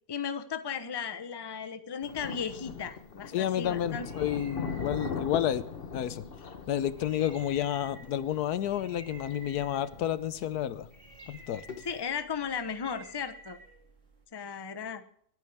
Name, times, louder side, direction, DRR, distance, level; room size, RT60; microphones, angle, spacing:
voice 1, 0.1-4.1 11.8-13.6 14.3-15.0, left 6 dB, 20° left, 10 dB, 0.7 m, -36 dB
Thunder, 2.0-12.0, left 5 dB, 40° left, 1.1 m, -41 dB
voice 2, 3.3-5.6 5.9-6.2 6.7-10.9 11.3-11.6, left 11 dB, 70° left, 15 dB, 1.2 m, -30 dB
sound 1, 3.6-14.2, right 2 dB, 45° right, 2.7 m, -53 dB
22.5 x 9.7 x 3.5 m, 0.63 s
omnidirectional pair, 1.8 m